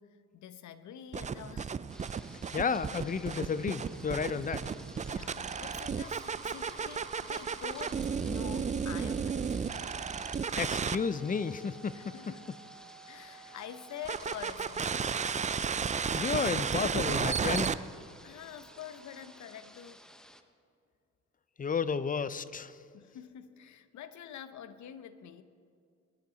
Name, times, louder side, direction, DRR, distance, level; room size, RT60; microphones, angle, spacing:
voice 1, 0.0-1.8 5.0-9.7 11.9-12.4 13.1-15.1 18.2-20.0 22.9-25.4, left 9 dB, 70° left, 12 dB, 0.9 m, -47 dB
sound 1, 1.1-11.0 14.0-17.7, right 6 dB, 25° right, 0.4 m, -33 dB
sound 2, 1.9-20.4, equal, ahead, 0.9 m, -55 dB
voice 2, 2.5-4.7 10.6-12.1 16.1-17.8 21.6-22.7, left 5 dB, 30° left, 15 dB, 0.5 m, -32 dB
21.0 x 11.0 x 4.0 m, 2.4 s
cardioid pair, 90°, 30 cm